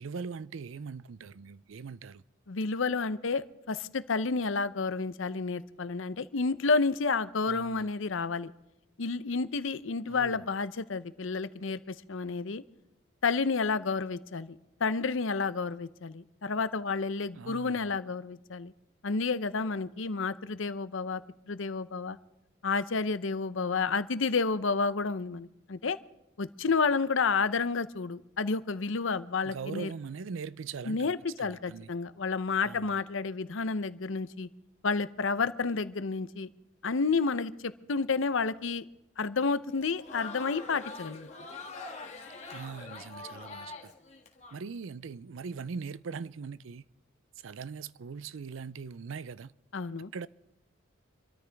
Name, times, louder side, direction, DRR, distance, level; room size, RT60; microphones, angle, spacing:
voice 1, 0.0-2.2 7.5-7.9 10.1-10.5 17.4-18.0 29.4-31.9 32.6-33.0 42.5-43.9 44.5-46.8 47.4-49.5 50.1-50.3, right 5 dB, 75° right, 0.5 m, -41 dB
voice 2, 2.5-8.5 9.0-12.6 13.2-18.7 19.0-21.2 21.5-22.2 22.6-26.0 26.4-29.9 30.9-34.5 34.8-36.5 36.8-38.8 39.2-41.3 49.7-50.1, left 4 dB, 70° left, 0.7 m, -30 dB
Crowd, 39.7-44.6, left 3 dB, 30° left, 1.7 m, -44 dB
27.0 x 13.5 x 3.5 m
head